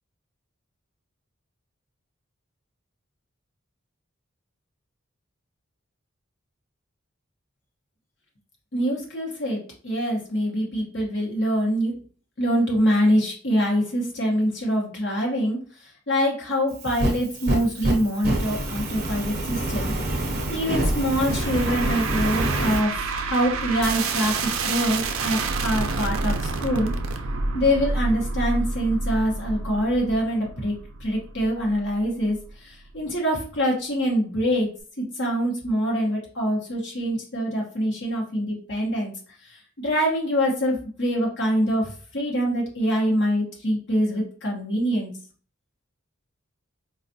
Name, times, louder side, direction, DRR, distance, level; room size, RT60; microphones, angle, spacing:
voice 1, 8.7-11.9 12.4-26.9 27.5-30.7 31.0-34.7 35.0-39.1 39.4-45.1, equal, 55° left, -2 dB, 0.9 m, -25 dB
Fire, 16.7-22.8, right 1 dB, 45° right, 0.7 m, -26 dB
sound 1, 21.3-32.5, right 3 dB, 80° right, 0.4 m, -29 dB
4.3 x 2.3 x 2.6 m, 0.41 s
head